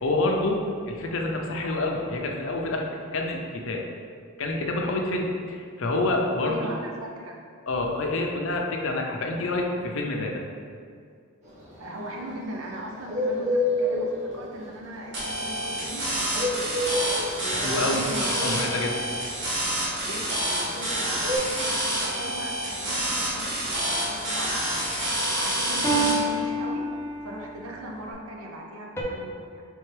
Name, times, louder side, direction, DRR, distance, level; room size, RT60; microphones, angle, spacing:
voice 1, 0.0-3.8 4.4-6.8 7.7-10.4 17.5-18.9, left 2 dB, 65° left, 1 dB, 0.5 m, -27 dB
voice 2, 6.4-7.3 11.8-16.8 17.4-18.8 20.0-25.0 25.3-26.9 27.2-29.6, right 1 dB, 80° right, 0 dB, 0.7 m, -39 dB
Bird, 11.5-21.4, left 1 dB, 35° right, 1.1 m, -28 dB
sound 1, 15.1-26.1, right 1 dB, 55° right, 1.2 m, -28 dB
sound 2, 23.8-24.5 25.8-27.5 29.0-29.1, right 1 dB, 10° left, 0.5 m, -28 dB
4.5 x 3.4 x 3.3 m, 2.2 s
head